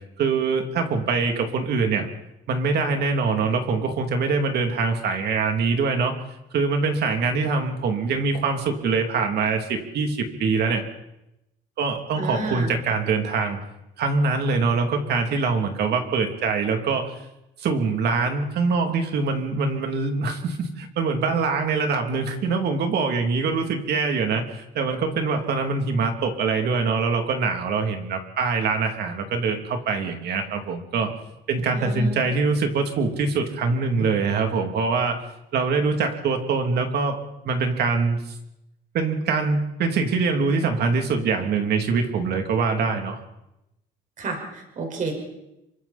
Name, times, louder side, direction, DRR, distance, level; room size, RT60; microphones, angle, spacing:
voice 1, 0.2-2.1 2.5-6.1 6.5-10.8 11.8-13.6 14.0-17.1 17.6-31.1 31.5-35.2 35.5-38.3 38.9-43.2, right 4 dB, 60° right, 4 dB, 3.0 m, -24 dB
voice 2, 12.2-12.7 31.7-32.2 34.0-34.1 44.2-45.1, right 2 dB, 45° right, 3 dB, 5.3 m, -30 dB
27.5 x 24.0 x 4.3 m, 0.89 s
cardioid pair, 145°, 19 cm